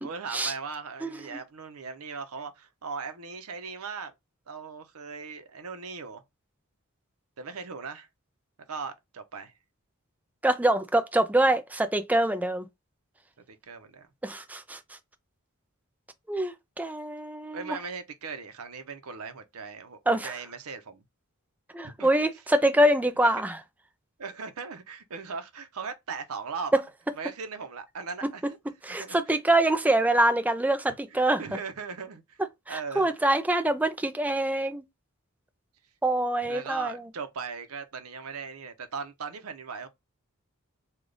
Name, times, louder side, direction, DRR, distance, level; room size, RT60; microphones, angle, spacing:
voice 1, 0.0-4.1 4.5-6.2 7.4-8.1 8.7-9.5 13.5-14.1 17.5-21.0 21.8-22.1 23.2-23.3 24.2-26.8 27.2-28.6 28.9-29.4 31.1-32.4 32.7-33.1 36.4-39.9, right 5 dB, 80° right, 0.7 m, -38 dB
voice 2, 1.0-1.4 10.4-12.6 14.2-14.8 16.3-17.8 20.1-20.3 21.7-23.6 28.8-31.4 32.7-34.8 36.0-37.0, right 1 dB, 5° right, 0.4 m, -25 dB
3.3 x 2.4 x 3.8 m
head